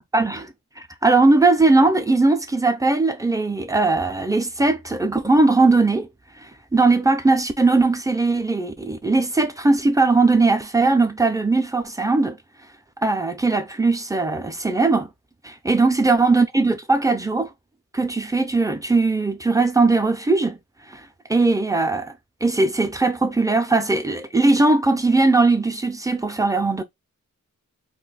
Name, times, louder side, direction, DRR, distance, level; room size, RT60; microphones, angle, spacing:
voice 1, 0.1-0.5 1.0-6.1 6.4-12.4 13.0-15.1 15.4-17.5 17.9-20.6 20.9-21.0 21.3-22.1 22.4-26.8, right 3 dB, 10° right, 0.4 m, -19 dB
2.5 x 2.2 x 3.8 m
wide cardioid pair, 110°, 33 cm